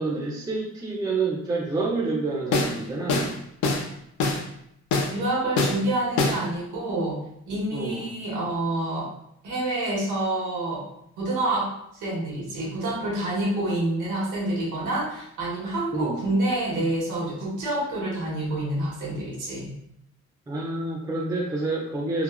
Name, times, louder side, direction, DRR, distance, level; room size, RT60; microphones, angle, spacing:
voice 1, 0.0-3.3 7.7-8.1 15.9-16.2 20.5-22.2, right 3 dB, 15° right, -2 dB, 0.4 m, -28 dB
sound 1, 2.5-2.8 3.1-3.3 3.6-3.9 4.2-4.4 4.9-5.1 5.6-5.8 6.2-6.4, left 3 dB, 70° left, 0.5 m, -23 dB
voice 2, 5.1-9.1 9.4-10.8 11.2-19.7, right 1 dB, 80° right, -4 dB, 1.2 m, -28 dB
3.0 x 2.2 x 2.2 m, 0.76 s
cardioid pair, 90°, 30 cm